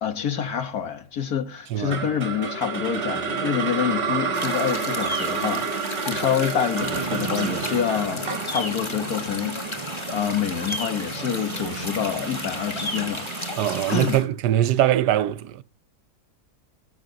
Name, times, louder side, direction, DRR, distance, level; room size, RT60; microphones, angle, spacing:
voice 1, 0.0-13.3 13.9-14.2, left 8 dB, 65° left, 1.8 m, -27 dB
voice 2, 1.7-2.0 13.6-15.6, right 12 dB, 85° right, 1.3 m, -22 dB
sound 1, 1.9-10.1, right 5 dB, 40° right, 1.5 m, -29 dB
sound 2, 4.3-14.2, left 2 dB, 20° left, 1.4 m, -34 dB
sound 3, 6.8-14.1, right 5 dB, 25° right, 0.8 m, -34 dB
18.5 x 6.8 x 3.9 m
omnidirectional pair, 1.7 m